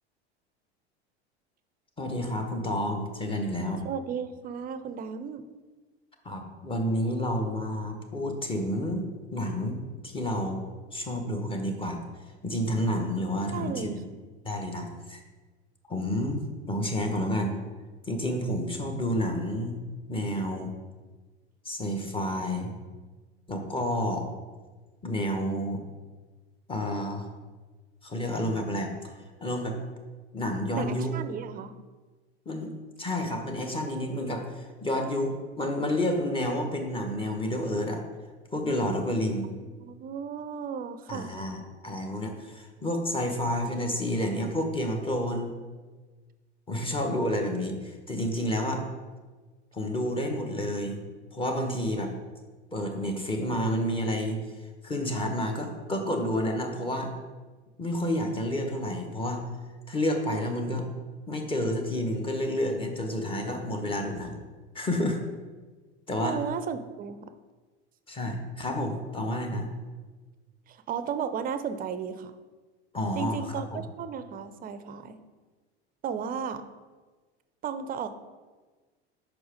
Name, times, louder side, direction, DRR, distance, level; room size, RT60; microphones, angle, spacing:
voice 1, 2.0-3.8 6.2-10.6 10.9-12.0 12.4-14.0 14.4-15.2 15.9-16.4 16.7-17.6 18.1-19.8 20.1-20.7 21.6-22.7 23.5-24.3 25.0-25.8 26.7-27.3 28.0-28.9 29.4-29.7 30.3-31.1 32.5-32.7 33.0-38.0 38.5-39.5 41.1-45.5 46.7-48.8 49.7-51.0 51.3-52.1 52.7-54.4 54.8-57.1 57.8-59.4 59.9-60.9 61.3-64.4 64.7-65.2 66.1-66.4 68.1-69.7 72.9-73.8, left 1 dB, 15° left, 3 dB, 1.1 m, -30 dB
voice 2, 3.8-5.5 13.5-14.0 30.7-31.8 39.6-41.3 66.2-67.3 70.7-72.3 73.2-75.2 76.0-76.6 77.6-78.1, right 7 dB, 25° right, 11 dB, 0.5 m, -34 dB
5.7 x 4.6 x 5.1 m, 1.3 s
hypercardioid pair, 85°, 33 cm